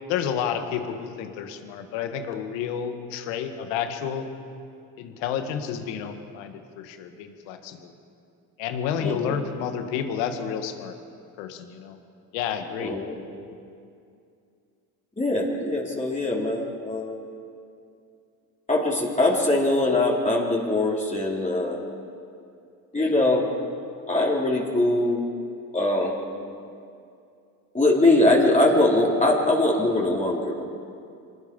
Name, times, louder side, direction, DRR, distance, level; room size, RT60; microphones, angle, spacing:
voice 1, 0.1-4.3 5.0-7.9 8.6-10.9 11.4-12.0 12.3-12.9 23.0-23.1, left 8 dB, 80° left, 6 dB, 1.9 m, -30 dB
voice 2, 9.0-9.4 12.8-13.2 15.2-17.2 18.7-21.8 22.9-23.5 24.1-25.2 25.7-26.1 27.7-30.6, left 2 dB, 15° left, -4 dB, 4.1 m, -22 dB
25.0 x 19.5 x 5.5 m, 2.5 s
supercardioid pair, 70°, 44 cm